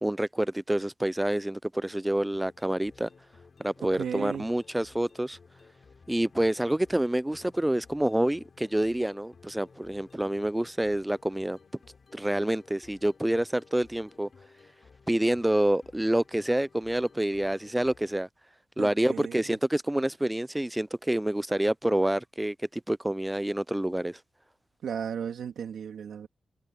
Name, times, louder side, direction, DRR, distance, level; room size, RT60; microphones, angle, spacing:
voice 1, 0.0-3.1 3.6-5.4 6.1-11.6 12.1-14.3 15.1-18.3 18.8-24.2, right 1 dB, 5° right, 0.3 m, -27 dB
sound 1, 2.3-18.1, left 5 dB, 40° left, 4.1 m, -56 dB
voice 2, 3.9-4.5 18.8-19.6 24.8-26.3, right 8 dB, 85° right, 2.9 m, -35 dB
wide cardioid pair, 170°, 0 cm